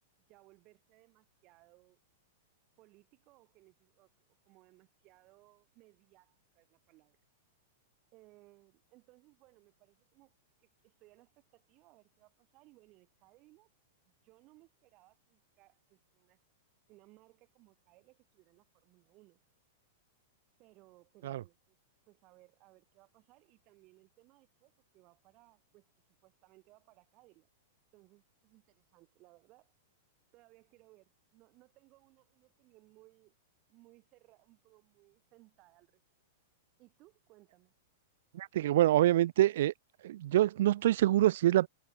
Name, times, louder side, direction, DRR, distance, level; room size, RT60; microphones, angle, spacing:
voice 1, 0.3-2.0 2.8-7.2 8.1-13.7 14.1-16.4 16.9-19.4 20.6-21.8 22.1-27.5 27.9-29.7 30.3-33.3 33.7-36.0 36.8-37.7, right 21 dB, 30° right, 7.0 m, -64 dB
voice 2, 38.3-39.7 40.0-41.7, right 13 dB, 55° right, 0.4 m, -26 dB
supercardioid pair, 175°, 0 cm